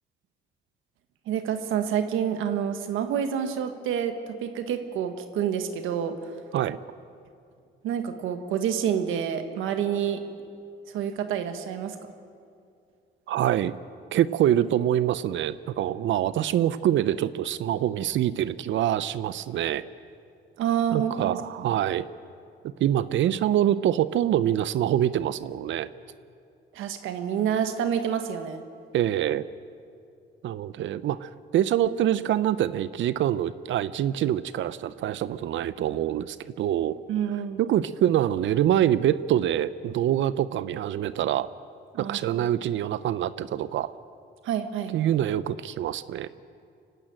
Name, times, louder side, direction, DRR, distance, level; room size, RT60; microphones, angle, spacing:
voice 1, 1.3-6.4 7.8-10.2 10.9-12.0 20.6-21.7 26.7-28.6 37.1-37.6 41.9-42.4 44.4-44.9, right 8 dB, 90° right, 8 dB, 1.5 m, -28 dB
voice 2, 13.3-13.7 14.1-19.8 20.9-22.1 22.8-25.9 28.9-29.5 30.4-37.0 37.6-41.5 42.0-43.9 44.9-46.3, right 11 dB, 70° right, 15 dB, 0.6 m, -25 dB
24.5 x 12.0 x 9.0 m, 2.4 s
cardioid pair, 90°, 20 cm